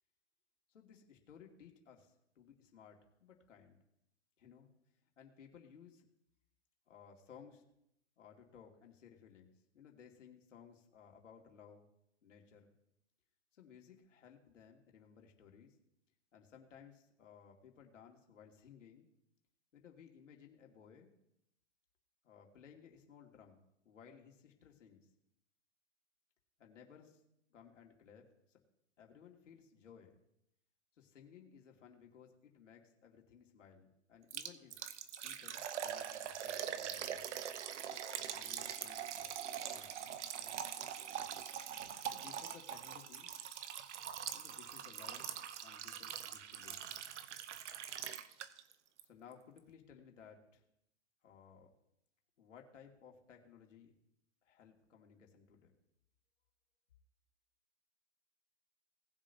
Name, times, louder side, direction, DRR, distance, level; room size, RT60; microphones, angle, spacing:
voice 1, 0.7-3.8 4.4-4.7 5.2-6.1 6.9-7.6 8.2-11.9 12.2-12.8 13.5-15.8 16.3-19.1 19.7-21.1 22.2-25.1 26.6-27.2 27.5-28.6 29.0-30.1 31.0-34.8 35.2-37.3 38.3-39.4 39.7-40.0 40.4-40.6 42.1-43.3 44.3-46.9 49.1-50.6 51.2-51.7 52.4-53.9 54.4-55.7, left 7 dB, 90° left, 1 dB, 2.5 m, -59 dB
Liquid, 34.3-48.7 49.0-49.1 49.6-49.7, right 9 dB, 70° right, 0.9 m, -43 dB
19.0 x 7.0 x 2.8 m, 0.79 s
hypercardioid pair, 155°, 36 cm